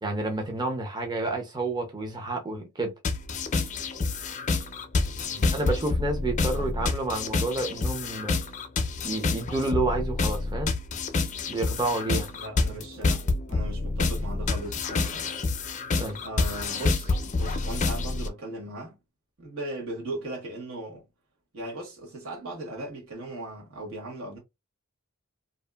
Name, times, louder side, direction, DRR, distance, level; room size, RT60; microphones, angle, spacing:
voice 1, 0.0-2.9 5.5-8.4 9.0-10.7 11.5-12.3 16.0-16.2, right 2 dB, 20° right, 0.5 m, -29 dB
sound 1, 3.0-18.3, left 3 dB, 35° left, 0.4 m, -28 dB
voice 2, 5.2-5.6 6.6-6.7 12.3-15.2 16.2-19.0 19.4-21.1 21.5-24.4, right 2 dB, 80° right, 1.3 m, -38 dB
2.6 x 2.5 x 2.2 m
head